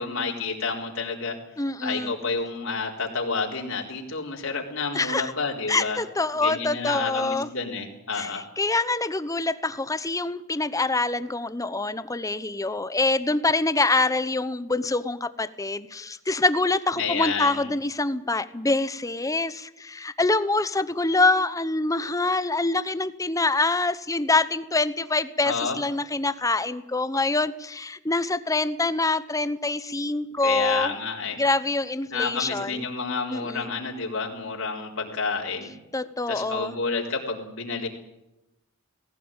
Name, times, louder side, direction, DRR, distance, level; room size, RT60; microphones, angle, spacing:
voice 1, 0.0-1.4 1.8-6.0 6.4-8.4 17.0-17.7 25.4-25.8 30.4-31.4 32.1-35.7 36.3-37.9, left 4 dB, 70° left, -1 dB, 3.9 m, -29 dB
voice 2, 1.6-2.1 4.9-5.3 5.7-7.5 8.1-30.9 31.4-32.9 33.3-33.7 35.9-36.8, left 3 dB, 15° left, 14 dB, 0.9 m, -25 dB
18.5 x 17.5 x 9.0 m, 0.92 s
head